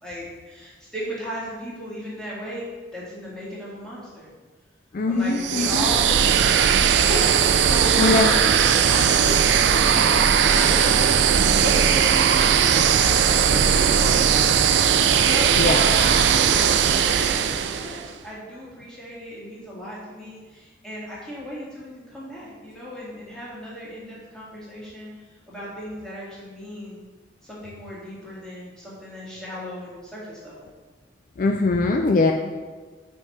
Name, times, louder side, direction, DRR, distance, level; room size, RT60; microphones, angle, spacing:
voice 1, 0.0-4.3 5.1-11.2 11.5-14.4 14.7-25.1 25.5-27.0 27.4-30.7, equal, 5° left, -7 dB, 1.8 m, -35 dB
voice 2, 4.9-5.9 8.0-8.3 15.6-15.8 31.4-32.3, left 3 dB, 50° left, 4 dB, 0.4 m, -21 dB
sound 1, 5.4-18.0, right 8 dB, 85° right, 0.4 m, -18 dB
5.6 x 4.5 x 4.6 m, 1.4 s
head